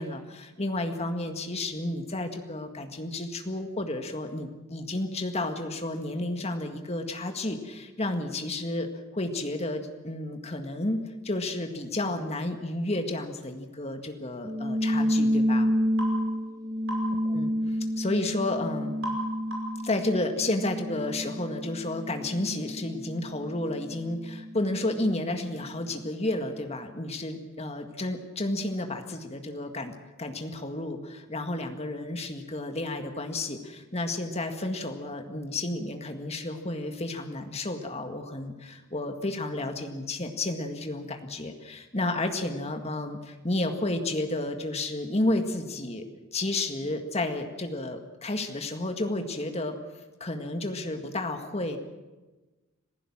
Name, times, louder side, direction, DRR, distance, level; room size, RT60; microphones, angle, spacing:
voice 1, 0.0-8.9 9.1-15.7 17.3-19.0 19.8-29.9 30.2-46.1 46.3-49.8 50.2-51.8, left 2 dB, 30° left, 6 dB, 1.8 m, -31 dB
sound 1, 14.4-25.3, equal, 15° right, 0.6 m, -30 dB
sound 2, 16.0-16.2 16.9-17.1 19.0-19.2 19.5-19.8, right 1 dB, 65° right, 5.4 m, -34 dB
26.5 x 15.5 x 7.4 m, 1.2 s
head